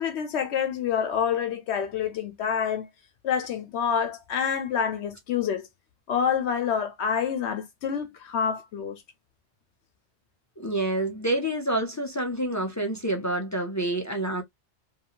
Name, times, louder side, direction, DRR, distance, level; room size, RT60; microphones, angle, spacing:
voice 1, 0.0-2.9 3.2-5.7 6.1-9.0, left 7 dB, 75° left, 0.9 m, -27 dB
voice 2, 10.6-14.4, right 1 dB, 25° left, 0.3 m, -28 dB
2.7 x 2.5 x 2.7 m
omnidirectional pair, 1.2 m